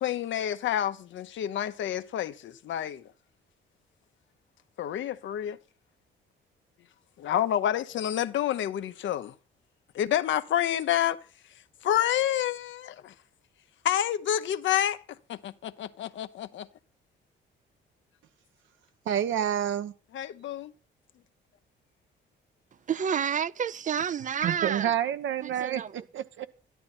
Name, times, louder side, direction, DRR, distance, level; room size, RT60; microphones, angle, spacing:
voice 1, 0.0-3.0 4.8-5.6 7.2-9.3 9.9-11.2 11.8-13.1 13.8-15.0 15.3-16.7 20.1-20.7, left 11 dB, 70° left, 0.9 m, -28 dB
voice 2, 19.1-19.9 24.4-26.5, right 10 dB, 75° right, 1.2 m, -29 dB
voice 3, 22.9-25.0 25.4-25.9, right 8 dB, 40° right, 0.5 m, -30 dB
13.0 x 11.0 x 4.3 m
cardioid pair, 90°, 20 cm